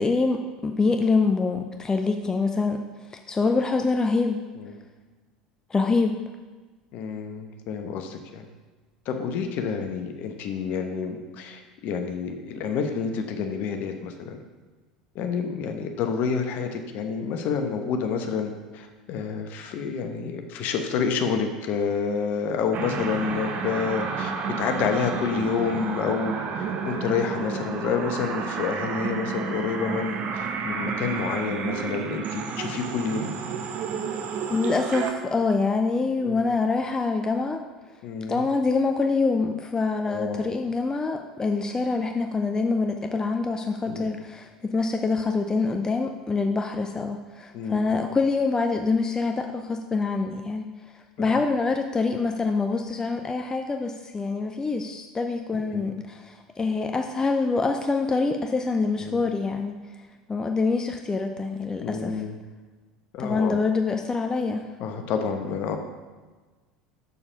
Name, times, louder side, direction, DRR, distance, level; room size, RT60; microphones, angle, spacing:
voice 1, 0.0-2.8 3.1-4.4 5.7-6.2 34.5-37.6 38.3-50.7 50.9-59.7 60.3-62.2 63.2-64.7, left 4 dB, 15° left, 5 dB, 0.6 m, -25 dB
voice 2, 6.9-8.5 9.1-14.4 15.1-33.3 36.2-36.4 38.0-38.4 40.1-40.5 43.8-44.1 47.5-47.9 51.2-51.4 55.5-55.9 59.0-59.2 61.8-62.4 63.1-63.6 64.8-65.8, left 6 dB, 45° left, 6 dB, 1.1 m, -29 dB
sound 1, 22.7-35.1, right 5 dB, 40° right, 1.0 m, -31 dB
7.0 x 6.8 x 5.1 m, 1.3 s
figure-of-eight pair, 75°, 4 cm